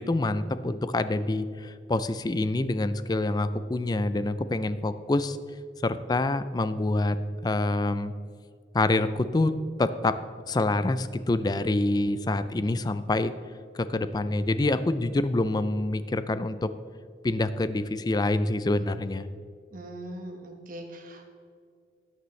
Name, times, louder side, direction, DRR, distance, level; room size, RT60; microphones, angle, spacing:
voice 1, 0.0-5.4 5.8-7.2 7.4-8.1 8.7-9.5 9.8-10.2 10.5-13.3 13.7-16.7 17.2-19.3, left 2 dB, 20° left, 13 dB, 0.4 m, -26 dB
voice 2, 19.7-21.2, right 1 dB, 50° right, 3 dB, 1.4 m, -41 dB
13.0 x 9.5 x 3.2 m, 2.2 s
head